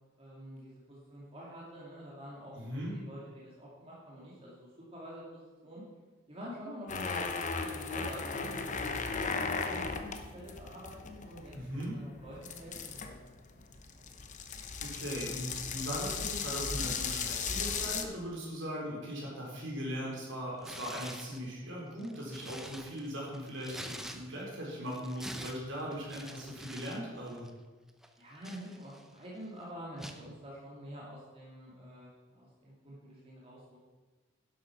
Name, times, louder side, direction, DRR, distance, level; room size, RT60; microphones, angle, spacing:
voice 1, 0.2-5.8 6.3-11.5 11.8-13.6 28.2-33.8, equal, 30° right, -6 dB, 2.4 m, -47 dB
voice 2, 2.5-3.0 11.5-12.0 14.8-27.5, equal, 65° right, -3 dB, 4.0 m, -39 dB
sound 1, 6.9-18.0, left 5 dB, 40° left, 0.9 m, -37 dB
Tearing, 20.6-21.4 21.9-24.6 24.9-27.0 27.3-27.5 28.0-29.2 30.0-30.3, equal, ahead, 0.7 m, -46 dB
11.0 x 7.8 x 5.8 m, 1.3 s
head